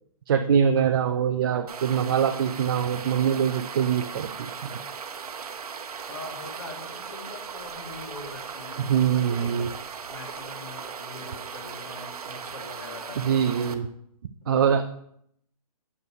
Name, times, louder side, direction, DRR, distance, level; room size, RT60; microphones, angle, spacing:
voice 1, 0.3-4.8 8.8-9.7 13.2-13.9 14.5-14.9, right 8 dB, 35° right, 7 dB, 0.4 m, -23 dB
sound 1, 1.7-13.7, right 6 dB, 75° right, 0.9 m, -38 dB
voice 2, 6.1-9.7 10.1-13.4 14.4-14.8, left 3 dB, 50° left, 0 dB, 2.1 m, -43 dB
8.1 x 5.2 x 4.6 m, 0.71 s
hypercardioid pair, 155°, 19 cm